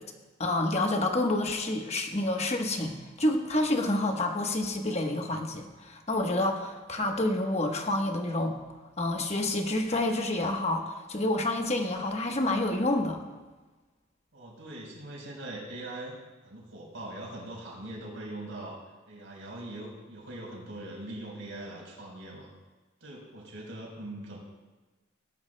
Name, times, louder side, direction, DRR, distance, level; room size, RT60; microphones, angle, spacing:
voice 1, 0.4-8.6 9.0-13.2, left 1 dB, 35° left, 3 dB, 1.1 m, -28 dB
voice 2, 14.3-16.2 16.4-18.8 19.1-22.5 23.0-24.4, right 1 dB, 80° right, -3 dB, 4.2 m, -41 dB
18.0 x 12.0 x 2.2 m, 1.2 s
head